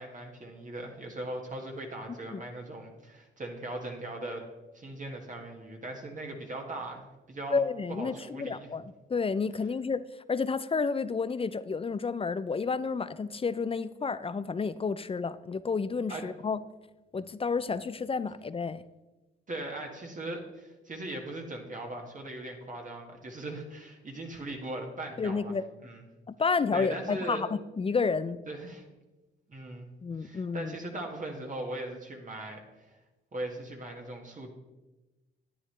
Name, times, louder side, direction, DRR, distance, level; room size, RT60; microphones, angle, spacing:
voice 1, 0.0-4.4 4.7-7.0 7.3-7.6 7.9-8.7 16.1-16.2 19.5-25.6 25.8-26.1 26.7-27.4 28.5-28.8 29.5-29.9 30.2-32.6 33.3-34.5, right 1 dB, 40° right, 1.7 m, -39 dB
voice 2, 2.1-2.4 7.5-16.6 17.1-18.8 25.2-25.6 26.3-28.4 30.0-30.8, left 5 dB, 30° left, 0.4 m, -31 dB
10.0 x 9.4 x 3.3 m
supercardioid pair, 60°, 20 cm